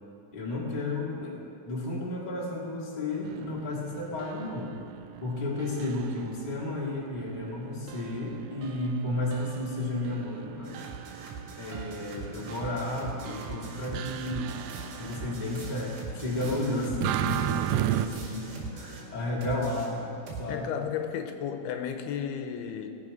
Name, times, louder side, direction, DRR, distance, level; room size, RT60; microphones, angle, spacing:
voice 1, 0.3-1.4 1.6-4.8 5.2-10.8 11.5-14.6 15.0-20.1 20.4-20.7, left 2 dB, 20° left, -4 dB, 1.0 m, -33 dB
sound 1, 3.2-15.7 16.3-18.1, right 13 dB, 85° right, 2.1 m, -36 dB
sound 2, 10.6-19.1 19.4-20.5, right 4 dB, 65° right, 3.5 m, -41 dB
voice 2, 20.5-22.9, left 8 dB, 85° left, 6 dB, 2.7 m, -33 dB
18.0 x 8.3 x 5.3 m, 2.8 s
omnidirectional pair, 4.7 m